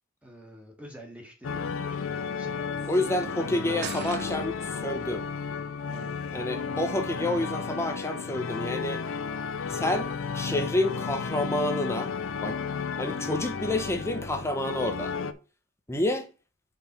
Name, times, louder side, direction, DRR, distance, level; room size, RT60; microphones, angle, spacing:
voice 1, 0.2-4.7 5.9-6.6, equal, 5° right, 1.6 m, -47 dB
sound 1, 1.4-15.3, left 5 dB, 70° left, 0.6 m, -33 dB
voice 2, 2.9-4.6 4.8-5.2 6.3-9.0 9.7-10.1 10.3-12.1 12.4-12.6 13.0-15.1 15.9-16.3, left 1 dB, 15° left, 0.9 m, -28 dB
sound 2, 3.8-4.8, right 8 dB, 55° right, 0.5 m, -39 dB
5.2 x 4.4 x 5.9 m
head